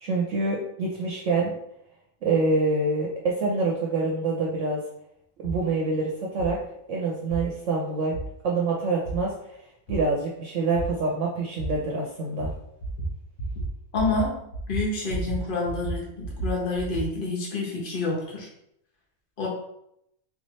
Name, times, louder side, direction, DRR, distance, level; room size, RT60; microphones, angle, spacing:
voice 1, 0.0-1.5 2.2-4.8 5.4-6.6 6.9-8.2 8.4-9.6 9.9-12.5, right 3 dB, 60° right, -2 dB, 1.0 m, -26 dB
sound 1, 5.4-5.6 6.4-6.5 7.3-7.4 8.1-8.2 9.1-9.2 9.9-10.0 10.8-10.9 11.6-11.7 12.4-12.5 12.8-13.1 13.4-13.7 13.9-14.2 14.5-15.4 15.7-17.1, right 3 dB, 80° left, 1.6 m, -31 dB
voice 2, 13.9-18.5 19.4-19.5, left 3 dB, 40° left, -3 dB, 1.3 m, -28 dB
3.9 x 3.1 x 4.2 m, 0.78 s
omnidirectional pair, 1.5 m